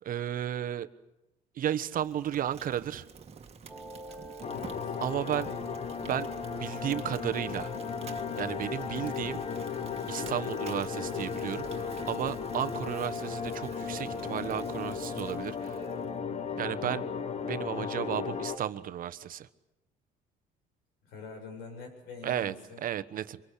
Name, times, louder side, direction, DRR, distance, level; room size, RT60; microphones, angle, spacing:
voice 1, 0.0-0.9 1.6-3.0 5.0-5.5 6.0-7.7 8.4-9.4 10.1-15.8 16.6-17.1 17.4-19.5 22.2-22.5 22.8-23.4, right 10 dB, 55° right, 12 dB, 1.1 m, -33 dB
Fire, 1.7-16.1, right 6 dB, 40° right, 2.1 m, -49 dB
sound 1, 3.7-18.7, right 2 dB, 5° left, 3.4 m, -45 dB
sound 2, 4.4-18.6, left 7 dB, 40° left, 1.0 m, -36 dB
voice 2, 4.5-5.5 8.4-8.7 21.0-22.8, left 4 dB, 85° left, 4 dB, 7.6 m, -46 dB
25.0 x 22.5 x 8.4 m, 0.93 s
cardioid pair, 110°, 17 cm